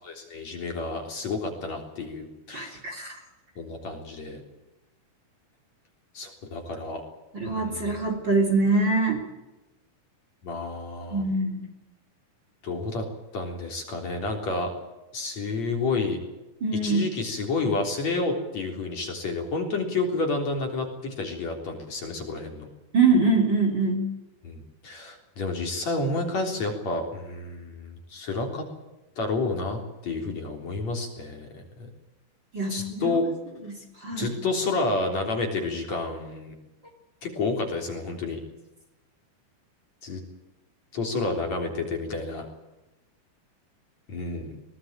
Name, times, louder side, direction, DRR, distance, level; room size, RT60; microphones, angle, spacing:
voice 1, 0.0-2.8 3.6-4.4 6.1-7.0 7.5-7.9 10.4-11.2 12.6-13.0 13.3-14.7 15.1-16.2 16.8-22.7 24.4-28.6 29.2-31.9 32.7-33.2 34.2-36.5 37.2-38.4 40.0-40.2 40.9-42.5 44.1-44.6, left 3 dB, 45° left, 3 dB, 4.7 m, -30 dB
voice 2, 2.5-3.2 7.3-9.2 11.1-11.7 16.6-17.0 22.9-24.1 32.5-33.2 33.6-34.3, right 3 dB, 30° right, 3 dB, 3.7 m, -24 dB
22.0 x 18.5 x 9.0 m, 1.0 s
omnidirectional pair, 4.5 m